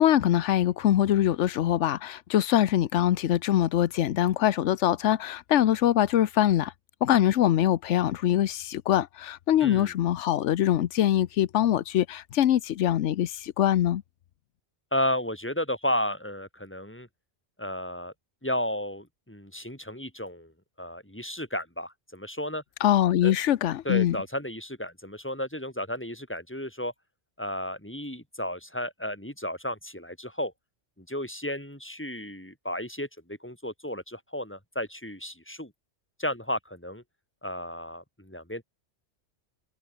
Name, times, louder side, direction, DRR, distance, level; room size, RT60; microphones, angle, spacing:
voice 1, 0.0-6.7 7.0-14.0 22.8-24.2, left 11 dB, 90° left, 1.0 m, -23 dB
voice 2, 9.6-9.9 14.9-17.1 17.6-18.1 18.4-20.5 20.8-22.6 23.2-23.3 23.8-26.9 27.4-30.5 31.0-35.7 36.2-37.0 37.4-38.6, left 1 dB, 10° left, 4.3 m, -33 dB
omnidirectional pair, 1.2 m